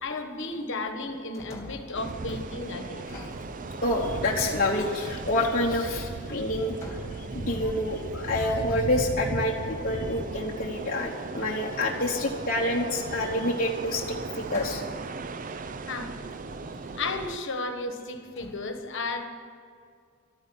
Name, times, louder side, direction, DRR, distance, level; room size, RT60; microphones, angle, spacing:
voice 1, 0.0-3.1 7.6-7.7 8.1-8.3 15.9-16.1 17.0-19.2, left 3 dB, 55° left, 6 dB, 1.3 m, -34 dB
sound 1, 1.0-2.1 2.9-4.1 5.8-6.3 6.7-7.7 8.6-9.5 13.0-13.1 14.0-15.2 15.9-16.0 16.4-17.0 18.4-18.6, left 1 dB, 10° left, 2.7 m, -45 dB
sound 2, 1.9-17.4, right 3 dB, 35° right, 0.5 m, -36 dB
voice 2, 3.8-14.8, left 1 dB, 40° left, -2 dB, 1.0 m, -28 dB
13.0 x 9.5 x 10.0 m, 2.2 s
head